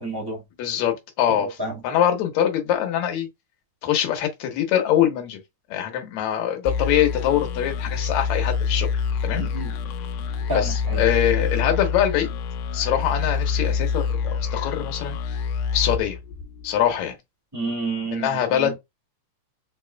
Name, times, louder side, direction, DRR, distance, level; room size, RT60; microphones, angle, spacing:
voice 1, 0.0-0.4 1.3-1.8 9.3-9.7 10.5-11.0 17.5-18.7, right 2 dB, 10° right, 1.0 m, -30 dB
voice 2, 0.6-1.5 1.8-3.3 3.8-5.4 5.7-8.9 9.2-9.5 10.5-12.3 12.7-15.2 15.7-16.2 16.6-17.1 18.1-18.8, left 10 dB, 70° left, 2.2 m, -23 dB
sound 1, 6.7-17.0, left 6 dB, 90° left, 2.1 m, -26 dB
4.8 x 3.0 x 2.2 m
omnidirectional pair, 3.6 m